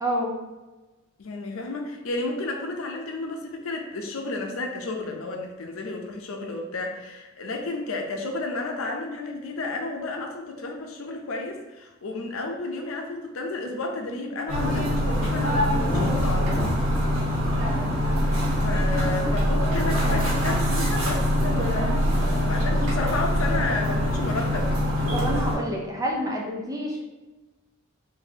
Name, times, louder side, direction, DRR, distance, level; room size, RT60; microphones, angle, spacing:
voice 1, 0.0-0.4 21.6-21.9 25.1-27.0, equal, 15° right, -1 dB, 0.5 m, -28 dB
voice 2, 1.2-16.8 18.6-21.9 22.5-25.1, left 2 dB, 80° left, 2 dB, 0.6 m, -32 dB
sound 1, 14.5-25.6, equal, 85° right, 1.3 m, -23 dB
3.8 x 2.7 x 2.7 m, 1.1 s
head